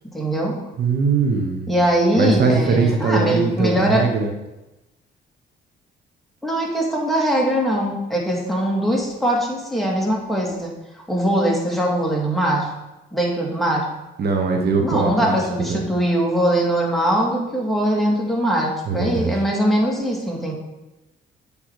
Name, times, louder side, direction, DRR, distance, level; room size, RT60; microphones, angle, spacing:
voice 1, 0.0-0.6 1.7-4.1 6.4-10.7 11.1-12.7 13.1-13.9 14.8-20.5, right 1 dB, ahead, -3 dB, 2.4 m, -21 dB
voice 2, 0.8-1.7 2.2-4.3 14.2-15.8 18.9-19.3, right 4 dB, 55° right, 3 dB, 1.2 m, -21 dB
8.8 x 5.2 x 4.8 m, 1.0 s
cardioid pair, 90°, 20 cm